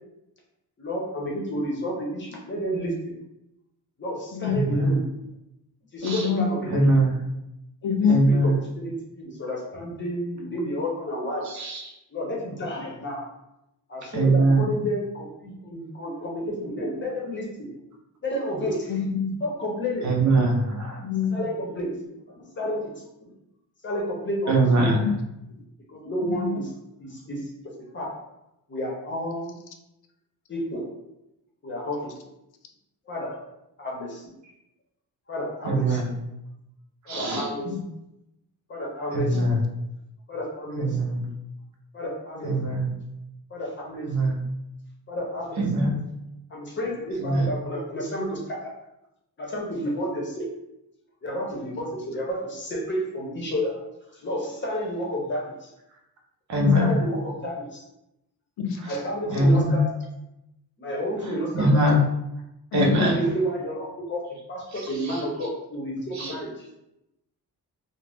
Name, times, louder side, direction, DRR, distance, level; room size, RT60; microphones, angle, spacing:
voice 1, 0.8-3.2 4.0-5.0 5.9-6.9 8.3-8.5 8.8-11.5 12.1-13.3 13.9-17.7 18.2-18.9 19.4-20.1 21.3-22.0 22.3-22.9 23.8-25.0 25.9-26.7 27.0-27.5 27.9-28.2 28.7-29.5 30.5-30.8 31.6-32.1 33.1-33.4 33.8-34.2 35.3-36.1 37.1-37.7 38.7-39.5 40.3-41.0 41.9-42.5 43.5-44.1 45.1-45.6 46.5-48.7 49.4-50.5 51.2-53.8 54.1-55.7 56.8-57.8 58.9-60.0 60.8-61.8 62.9-66.7, equal, 30° left, -2 dB, 0.7 m, -31 dB
voice 2, 4.5-4.9 6.0-6.2 6.7-7.1 8.1-8.5 11.5-11.8 14.1-14.7 20.0-21.0 24.5-25.0 35.7-36.1 37.1-37.5 39.1-39.6 40.8-41.2 42.4-42.9 44.1-44.3 45.6-45.9 47.2-47.5 56.5-57.0 59.3-59.8 61.5-62.0 62.7-63.2 66.2-66.3, right 2 dB, 50° right, -1 dB, 0.6 m, -21 dB
voice 3, 6.0-6.5 7.8-8.3 14.6-14.9 18.9-19.4 21.0-21.4 24.9-25.2 25.6-25.7 26.2-26.6 37.6-37.9 39.3-39.6 56.6-57.0 58.6-59.0 62.7-63.1, left 6 dB, 80° left, 5 dB, 0.5 m, -26 dB
2.5 x 2.0 x 3.4 m, 0.88 s
wide cardioid pair, 145°, 37 cm